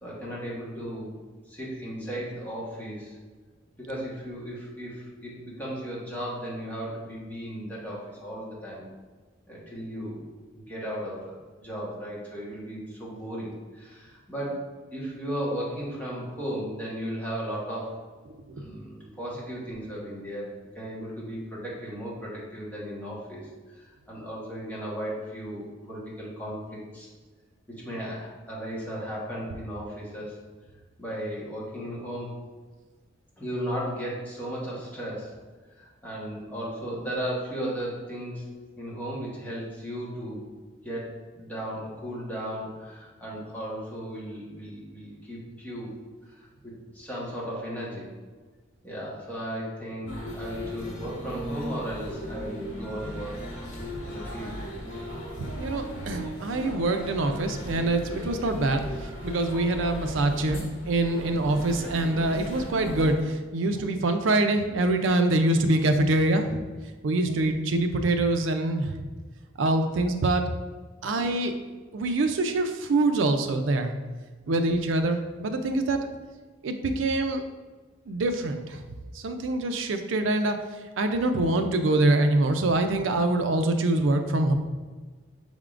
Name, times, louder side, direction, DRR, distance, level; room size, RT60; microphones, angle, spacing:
voice 1, 0.0-1.1 1.5-3.1 3.8-8.9 9.5-14.6 14.9-18.0 18.5-27.1 27.7-30.4 31.0-32.4 33.4-35.3 35.8-38.4 38.8-40.4 40.8-45.9 46.3-48.1 48.8-53.5 54.0-54.6, equal, 10° left, -7 dB, 1.1 m, -35 dB
sound 1, 50.1-63.1, equal, 80° left, 1.1 m, -37 dB
voice 2, 55.6-58.8 59.2-66.6 67.0-69.0 69.6-70.4 71.0-71.5 71.9-73.9 74.5-76.1 76.6-77.4 78.1-78.8 79.1-80.6 81.0-84.5, right 2 dB, 70° right, 6 dB, 0.4 m, -25 dB
5.6 x 3.6 x 2.4 m, 1.4 s
head